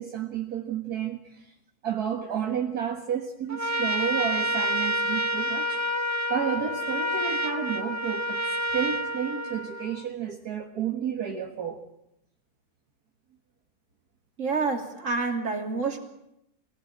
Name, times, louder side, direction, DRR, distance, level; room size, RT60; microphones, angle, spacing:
voice 1, 0.0-1.5 1.8-5.8 6.3-8.4 8.7-11.9, right 8 dB, 60° right, 2.1 m, -31 dB
Trumpet, 3.5-10.0, equal, 15° right, 0.5 m, -28 dB
voice 2, 14.4-16.0, right 4 dB, 45° right, 3.1 m, -28 dB
24.5 x 18.5 x 8.6 m
omnidirectional pair, 1.9 m